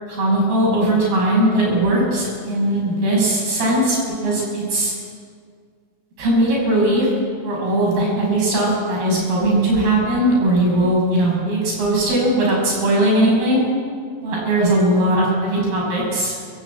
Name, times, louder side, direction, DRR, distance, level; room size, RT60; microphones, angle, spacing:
voice 1, 0.1-4.0 4.2-4.9 6.2-7.1 7.4-13.6 14.2-16.3, right 1 dB, 85° right, -3 dB, 8.8 m, -19 dB
24.5 x 15.5 x 8.5 m, 2.1 s
omnidirectional pair, 4.3 m